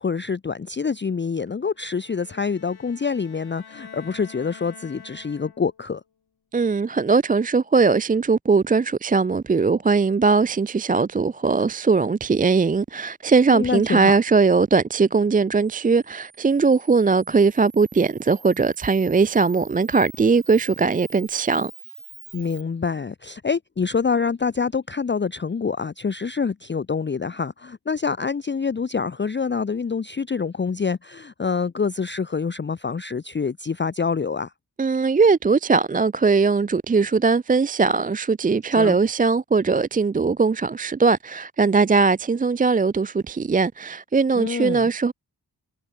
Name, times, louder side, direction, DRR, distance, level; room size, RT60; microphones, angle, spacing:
voice 1, 0.0-6.0 13.5-14.1 22.3-34.5 38.7-39.0 44.4-44.9, left 5 dB, 30° left, 0.5 m, -26 dB
Bowed string instrument, 1.7-5.9, left 7 dB, 70° left, 1.3 m, -46 dB
voice 2, 6.5-21.7 34.8-45.1, right 4 dB, 25° right, 0.3 m, -20 dB
Camera, 15.6-22.6, right 5 dB, 70° right, 5.0 m, -46 dB
wide cardioid pair, 75°, 39 cm